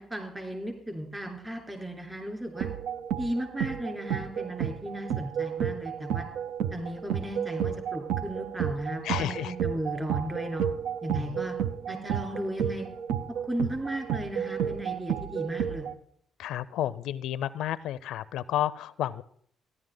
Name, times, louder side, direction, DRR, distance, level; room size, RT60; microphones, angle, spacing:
voice 1, 0.0-2.7 3.2-6.2 6.7-10.6 11.0-11.6 11.9-12.9 13.4-15.9, equal, 20° right, 3 dB, 3.6 m, -35 dB
sound 1, 2.5-15.9, right 8 dB, 85° right, 0.5 m, -32 dB
voice 2, 9.0-9.5 11.1-11.4 16.4-19.2, left 12 dB, 85° left, 18 dB, 0.4 m, -31 dB
14.5 x 11.0 x 3.8 m, 0.62 s
cardioid pair, 90°, 0 cm